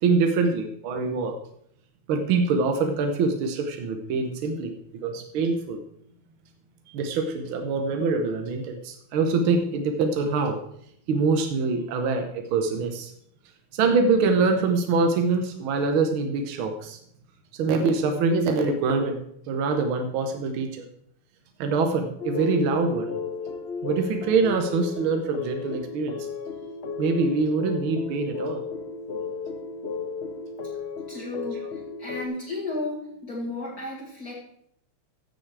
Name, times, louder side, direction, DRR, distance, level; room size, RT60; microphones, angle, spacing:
voice 1, 0.0-1.4 2.1-5.8 6.9-10.6 11.1-13.1 13.7-17.0 17.5-19.2 19.5-20.9 21.6-23.1 23.8-26.3 27.0-28.6, right 4 dB, 75° right, 5 dB, 1.8 m, -24 dB
sound 1, 22.2-32.2, left 5 dB, 75° left, 0.5 m, -34 dB
voice 2, 31.1-34.4, left 2 dB, 45° left, -4 dB, 2.4 m, -33 dB
15.0 x 6.6 x 4.7 m, 0.71 s
omnidirectional pair, 2.3 m